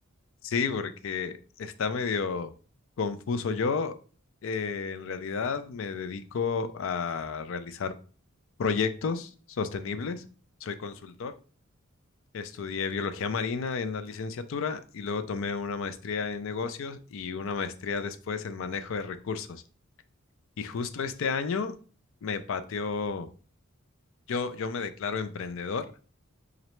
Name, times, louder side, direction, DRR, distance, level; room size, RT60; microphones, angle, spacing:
voice 1, 0.4-2.5 3.0-3.9 4.4-7.9 8.6-10.3 10.6-11.3 12.3-19.6 20.6-21.7 22.2-23.3 24.3-25.9, left 5 dB, 65° left, 0.4 m, -32 dB
3.8 x 3.2 x 3.0 m
head